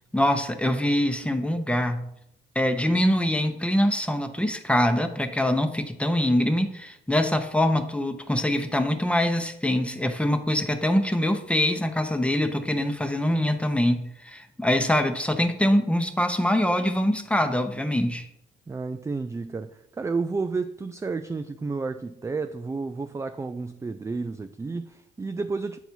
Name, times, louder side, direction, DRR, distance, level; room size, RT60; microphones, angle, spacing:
voice 1, 0.1-2.0 2.5-18.3, left 1 dB, 5° left, 0.8 m, -24 dB
voice 2, 18.7-25.8, right 4 dB, 15° right, 0.3 m, -31 dB
8.1 x 4.0 x 4.5 m
cardioid pair, 90°, 20 cm